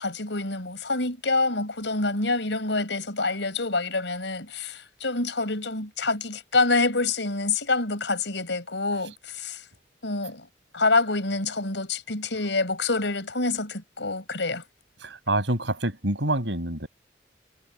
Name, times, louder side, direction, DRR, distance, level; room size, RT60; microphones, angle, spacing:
voice 1, 0.0-9.6 10.0-10.5 10.7-14.6, left 3 dB, 85° left, 5.1 m, -26 dB
voice 2, 15.0-16.9, right 1 dB, 90° right, 6.9 m, -26 dB
head